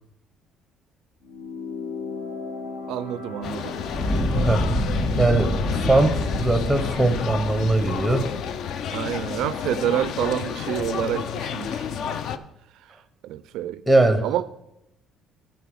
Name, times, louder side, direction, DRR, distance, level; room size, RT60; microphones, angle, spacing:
sound 1, 1.2-7.0, left 4 dB, 80° left, 1.4 m, -37 dB
voice 1, 2.9-3.8 8.9-12.5 12.9-13.0 13.2-13.8 14.2-14.4, right 12 dB, 65° right, 0.4 m, -28 dB
sound 2, 3.4-12.4, left 8 dB, 50° left, 0.5 m, -30 dB
Fire, 3.8-9.0, equal, 30° left, 2.6 m, -27 dB
voice 2, 5.2-8.3 13.9-14.2, right 2 dB, ahead, 0.7 m, -20 dB
10.0 x 4.3 x 7.7 m
cardioid pair, 165°, 0 cm